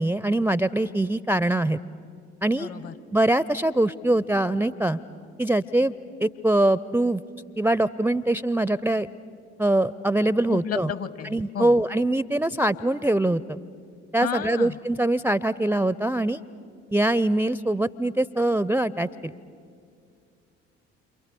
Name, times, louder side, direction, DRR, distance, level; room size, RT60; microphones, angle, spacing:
voice 1, 0.0-1.8 2.4-2.7 3.1-5.0 5.4-5.9 6.2-7.2 7.6-9.1 9.6-10.9 11.3-13.6 14.1-16.4 16.9-19.3, right 1 dB, 5° right, 17 dB, 0.6 m, -23 dB
voice 2, 2.5-2.9 10.5-11.7 14.2-14.7, left 7 dB, 45° left, 16 dB, 1.2 m, -32 dB
29.0 x 27.0 x 6.9 m, 2.3 s
figure-of-eight pair, 45°, 34 cm